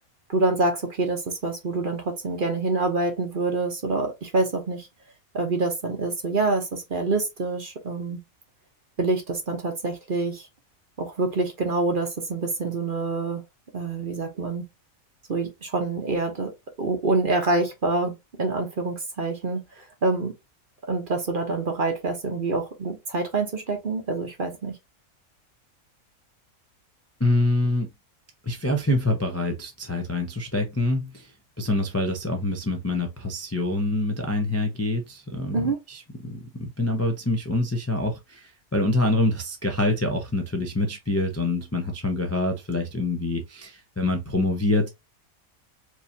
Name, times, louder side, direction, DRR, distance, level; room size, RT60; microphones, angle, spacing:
voice 1, 0.3-4.9 5.3-8.2 9.0-10.5 11.0-13.4 13.7-14.6 15.3-16.5 16.8-18.1 18.4-20.3 20.9-24.8 35.5-35.8, right 3 dB, 45° right, 0.9 m, -26 dB
voice 2, 27.2-27.9 28.4-44.9, left 2 dB, 15° left, 0.5 m, -26 dB
4.6 x 2.8 x 2.7 m
omnidirectional pair, 1.5 m